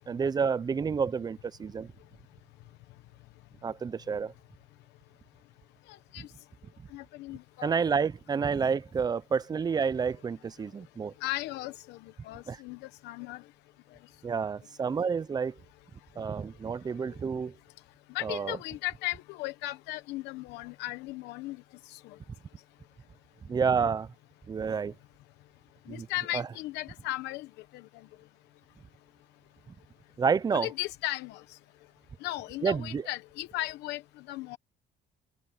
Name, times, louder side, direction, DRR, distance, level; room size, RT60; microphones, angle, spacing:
voice 1, 0.1-1.9 3.6-4.3 6.2-6.3 7.6-11.1 12.5-12.6 14.2-15.5 16.2-17.5 18.2-18.6 23.4-24.1 24.5-24.9 25.9-26.1 26.3-26.5 30.2-30.7 32.6-33.1, right 6 dB, 25° right, 0.5 m, -29 dB
voice 2, 5.9-6.3 6.9-8.1 11.2-13.4 18.1-22.2 25.9-27.5 27.7-27.9 30.5-31.6 32.2-34.6, left 17 dB, 90° left, 1.0 m, -37 dB
cardioid pair, 110°, 17 cm